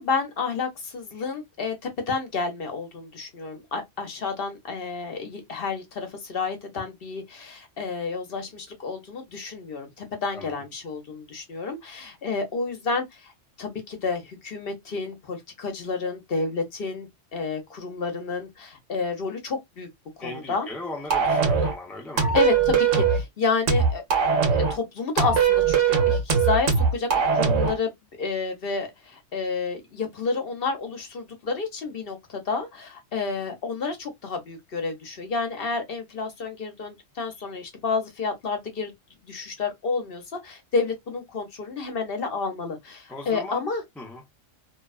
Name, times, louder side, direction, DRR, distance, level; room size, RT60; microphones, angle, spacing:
voice 1, 0.0-13.3 13.6-19.9 20.2-20.7 22.3-24.0 24.5-27.9 28.2-38.9 39.2-43.8, left 4 dB, 55° left, 0.9 m, -30 dB
voice 2, 20.2-22.3 43.1-43.7 44.0-44.2, left 2 dB, ahead, 0.3 m, -38 dB
sound 1, 21.1-21.8 22.2-23.2 23.7-24.8 25.2-27.8, right 6 dB, 90° right, 1.2 m, -21 dB
2.7 x 2.2 x 2.3 m
omnidirectional pair, 1.3 m